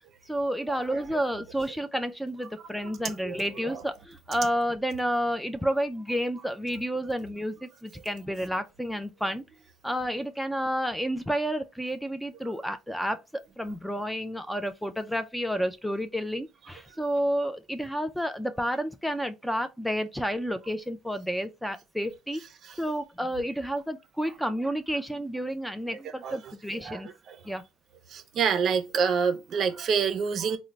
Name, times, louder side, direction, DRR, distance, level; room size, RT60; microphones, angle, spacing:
voice 1, 0.3-9.4 9.8-22.4 22.8-27.1 27.4-27.6, equal, ahead, 0.3 m, -30 dB
voice 2, 2.8-3.8 22.6-22.8 26.2-27.4 28.1-30.6, right 6 dB, 55° right, 0.5 m, -28 dB
3.8 x 2.0 x 3.1 m
supercardioid pair, 90°, 0 cm